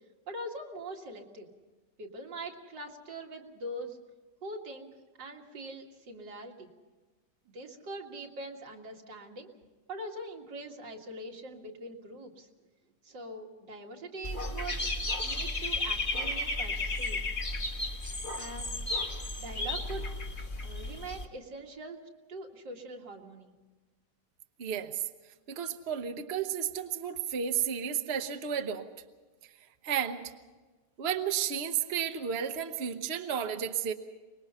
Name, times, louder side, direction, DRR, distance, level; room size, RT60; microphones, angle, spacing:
voice 1, 0.3-1.5 2.0-4.0 4.4-4.9 5.2-6.7 7.5-9.5 9.9-12.5 13.0-14.9 15.2-17.3 18.3-18.8 19.4-20.1 20.6-22.0 22.3-23.5, right 1 dB, 80° right, 1 dB, 2.7 m, -42 dB
Dog / Bird, 14.2-21.3, left 2 dB, 30° left, 1.8 m, -33 dB
voice 2, 24.6-25.0 25.5-28.9 29.8-30.3 31.0-33.9, right 8 dB, 45° right, 7 dB, 1.1 m, -32 dB
24.5 x 20.5 x 5.6 m, 1.3 s
omnidirectional pair, 1.9 m